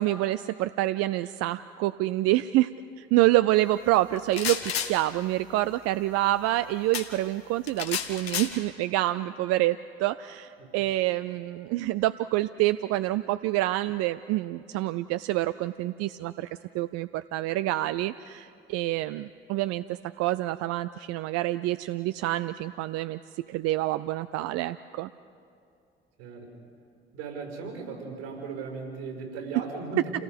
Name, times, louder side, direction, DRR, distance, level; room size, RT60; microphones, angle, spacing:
voice 1, 0.0-2.7 3.0-16.5 16.7-23.2 23.5-25.1, right 16 dB, 50° right, 14 dB, 0.5 m, -27 dB
sound 1, 4.2-4.9 6.9-7.1 7.7-8.5, left 8 dB, 75° left, 1.4 m, -30 dB
voice 2, 26.2-26.5 27.1-30.1, right 4 dB, 75° right, 2 dB, 5.5 m, -37 dB
29.5 x 18.0 x 5.3 m, 2.4 s
figure-of-eight pair, 50°, 31 cm